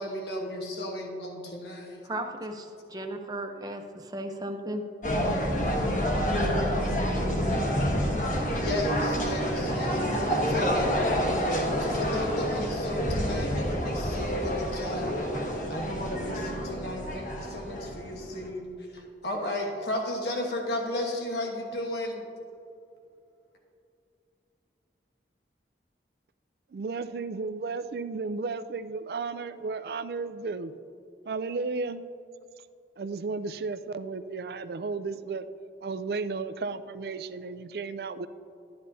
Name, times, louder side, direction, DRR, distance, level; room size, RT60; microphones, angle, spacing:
voice 1, 0.0-2.0 8.5-10.9 11.5-15.1 15.7-22.3, left 1 dB, 70° left, 1 dB, 1.3 m, -34 dB
voice 2, 2.0-4.8, right 1 dB, 20° right, 4 dB, 0.7 m, -35 dB
sound 1, 5.0-18.5, equal, 45° left, 1.3 m, -28 dB
voice 3, 26.7-30.7 31.3-32.0 33.0-35.4 35.8-38.3, right 4 dB, 65° right, 12 dB, 0.4 m, -33 dB
12.0 x 10.5 x 2.7 m, 2.6 s
head